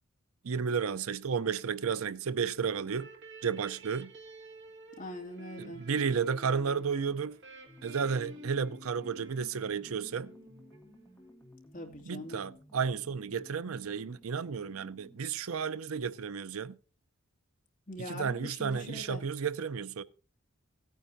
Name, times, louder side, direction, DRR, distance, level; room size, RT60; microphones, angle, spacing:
voice 1, 0.4-3.1 3.4-4.1 5.6-7.4 7.8-10.3 12.1-16.8 18.1-20.0, right 6 dB, 80° right, 0.6 m, -32 dB
sound 1, 2.8-11.3, right 1 dB, 55° right, 1.9 m, -51 dB
voice 2, 5.0-5.9 11.7-12.4 17.9-19.2, left 1 dB, 40° left, 2.4 m, -42 dB
sound 2, 7.7-15.3, left 1 dB, 10° left, 1.7 m, -57 dB
16.5 x 9.3 x 2.6 m
head